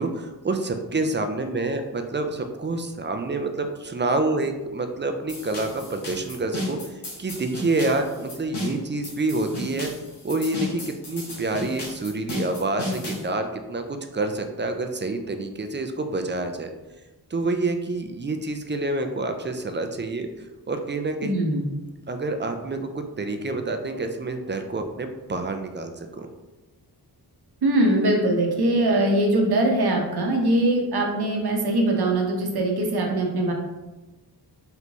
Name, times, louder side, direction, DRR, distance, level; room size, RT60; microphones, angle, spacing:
voice 1, 0.0-9.9 10.2-16.7 17.3-20.3 20.7-21.3 22.1-26.3, right 2 dB, 30° right, 6 dB, 0.4 m, -27 dB
sound 1, 5.3-13.3, left 1 dB, 85° left, 1.4 m, -34 dB
voice 2, 21.2-21.6 27.6-33.5, right 1 dB, 75° right, 0 dB, 0.9 m, -22 dB
4.1 x 3.3 x 3.0 m, 1.1 s
wide cardioid pair, 100°, 38 cm